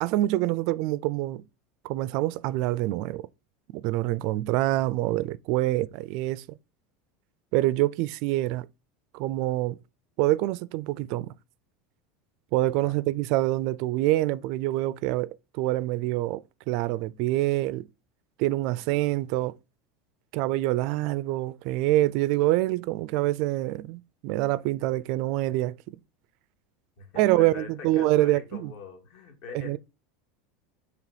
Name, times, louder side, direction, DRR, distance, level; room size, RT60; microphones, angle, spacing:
voice 1, 0.0-1.4 1.8-3.3 3.7-6.4 7.5-8.7 9.1-9.8 10.2-11.3 12.5-17.9 18.4-19.5 20.3-26.0 27.2-28.7 29.5-29.8, right 16 dB, 50° right, 0.4 m, -26 dB
voice 2, 27.0-29.8, left 5 dB, 50° left, 2.2 m, -43 dB
7.4 x 3.3 x 5.0 m
supercardioid pair, 170°, 0 cm